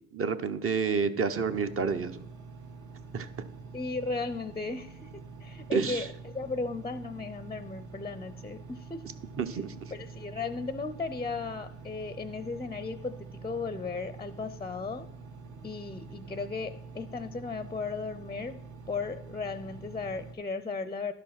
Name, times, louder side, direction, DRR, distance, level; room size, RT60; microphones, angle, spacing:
voice 1, 0.1-2.3 3.1-3.3 5.7-6.1 9.4-9.9, right 5 dB, 45° right, 9 dB, 0.8 m, -29 dB
Engine, 1.5-20.3, right 4 dB, 70° right, 1.3 m, -46 dB
voice 2, 3.7-9.0 9.9-15.1 15.6-18.6 18.9-21.1, left 4 dB, 15° left, 12 dB, 0.5 m, -36 dB
11.5 x 5.1 x 5.8 m, 0.78 s
cardioid pair, 90°, 30 cm